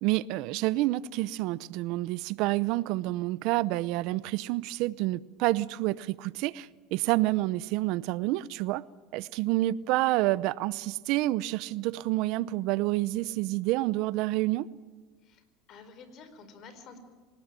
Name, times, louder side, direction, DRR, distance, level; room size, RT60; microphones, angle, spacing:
voice 1, 0.0-8.8 9.1-14.7, right 17 dB, 65° right, 0.7 m, -28 dB
voice 2, 15.2-17.0, left 5 dB, 50° left, 4.5 m, -50 dB
26.5 x 18.5 x 9.1 m
supercardioid pair, 120°, 0 cm